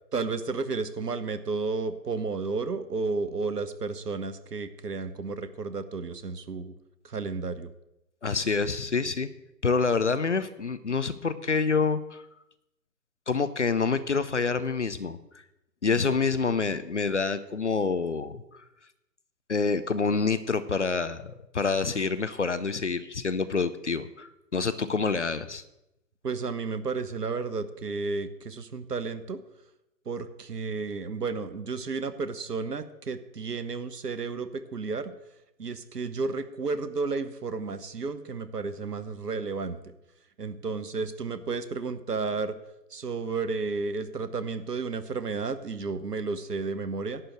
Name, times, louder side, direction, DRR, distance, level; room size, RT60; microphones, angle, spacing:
voice 1, 0.1-6.8 7.0-7.7 26.2-29.4 30.1-35.1 35.6-39.9 40.4-42.5 42.9-47.2, right 4 dB, 70° right, 12 dB, 1.1 m, -32 dB
voice 2, 8.2-9.3 9.6-12.2 13.3-15.2 15.8-18.6 19.5-25.6, left 4 dB, 45° left, 13 dB, 0.6 m, -27 dB
11.0 x 5.1 x 7.8 m, 0.89 s
figure-of-eight pair, 140°, 50 cm